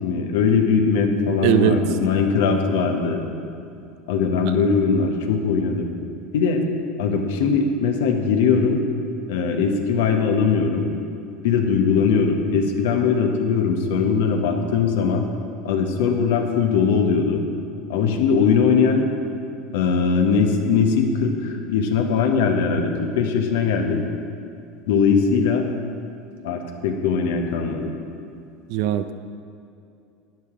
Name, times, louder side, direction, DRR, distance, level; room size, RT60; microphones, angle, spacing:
voice 1, 0.0-3.3 4.1-5.9 6.3-6.6 7.0-8.8 9.3-10.9 11.4-15.3 15.6-17.4 17.9-19.1 19.7-24.0 24.9-25.7 26.4-27.9, left 5 dB, 75° left, 4 dB, 1.2 m, -20 dB
voice 2, 1.4-1.8 28.7-29.1, right 10 dB, 65° right, 11 dB, 0.5 m, -19 dB
12.0 x 9.8 x 3.8 m, 2.5 s
hypercardioid pair, 85°, 0 cm